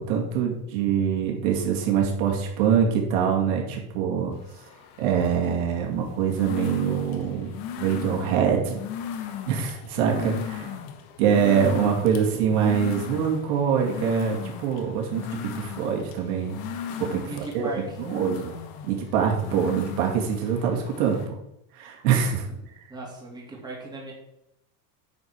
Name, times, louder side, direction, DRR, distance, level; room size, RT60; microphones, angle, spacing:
voice 1, 0.0-4.3 5.0-8.8 9.5-10.7 11.2-16.6 17.0-17.7 18.0-18.5 18.8-21.2 21.7-22.4, right 7 dB, 70° right, 0 dB, 2.5 m, -24 dB
sound 1, 4.3-21.3, left 9 dB, 50° left, 1.5 m, -37 dB
voice 2, 17.2-18.0 22.9-24.1, right 2 dB, 10° right, -3 dB, 2.8 m, -37 dB
9.4 x 4.8 x 6.7 m, 0.84 s
supercardioid pair, 145°, 46 cm